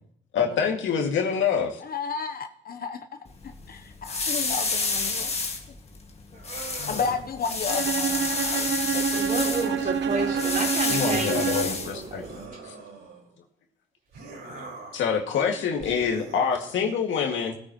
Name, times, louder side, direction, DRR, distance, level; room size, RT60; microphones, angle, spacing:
voice 1, 0.3-1.8 6.8-7.0 10.9-12.2 12.7-12.8 14.6-14.7 14.9-17.6, left 6 dB, 75° left, 1 dB, 2.1 m, -26 dB
voice 2, 1.8-3.1 3.4-5.3 6.9-9.2 9.6-9.8 15.3-15.9 16.8-16.9, left 5 dB, 50° left, 7 dB, 0.8 m, -33 dB
sound 1, 3.2-12.5, left 4 dB, 30° left, 1.9 m, -31 dB
sound 2, 6.3-7.3 8.0-8.8 9.9-10.9 12.2-13.3 14.1-15.1 15.8-16.8, right 3 dB, 80° right, 4.7 m, -42 dB
Bowed string instrument, 7.7-11.9, right 7 dB, 65° right, 1.1 m, -27 dB
voice 3, 9.1-12.4, right 3 dB, 40° right, 0 dB, 3.7 m, -31 dB
21.0 x 9.5 x 3.0 m, 0.72 s
cardioid pair, 90°, 20 cm